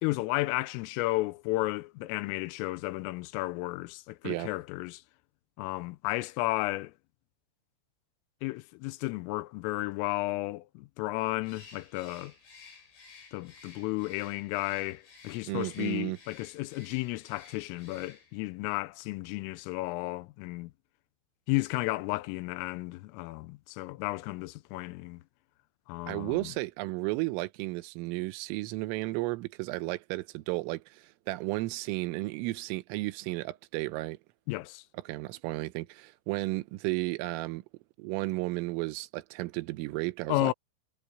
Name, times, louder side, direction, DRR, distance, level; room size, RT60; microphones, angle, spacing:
voice 1, 0.0-5.0 5.6-6.9 8.4-12.3 13.3-20.7 21.5-25.2 25.9-26.5 34.5-34.8 40.3-40.5, left 20 dB, 90° left, 3.4 m, -33 dB
Bird, 11.4-18.5, left 5 dB, 60° left, 9.8 m, -54 dB
voice 2, 15.5-16.2 26.1-34.2 35.1-37.6 38.0-40.5, right 21 dB, 85° right, 3.5 m, -33 dB
omnidirectional pair, 5.8 m